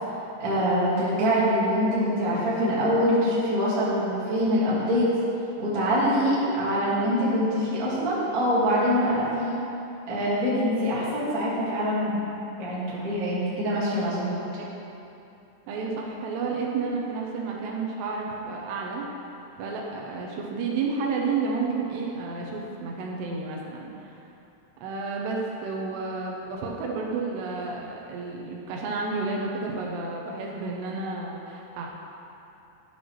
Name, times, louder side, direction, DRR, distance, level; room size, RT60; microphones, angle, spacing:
voice 1, 0.4-5.1 5.6-9.6 10.1-12.2 12.6-14.4, equal, 55° right, -9 dB, 1.0 m, -24 dB
voice 2, 15.7-19.0 19.6-24.2 24.8-31.9, right 4 dB, 80° right, -1 dB, 2.7 m, -31 dB
11.5 x 5.8 x 3.1 m, 2.8 s
omnidirectional pair, 5.1 m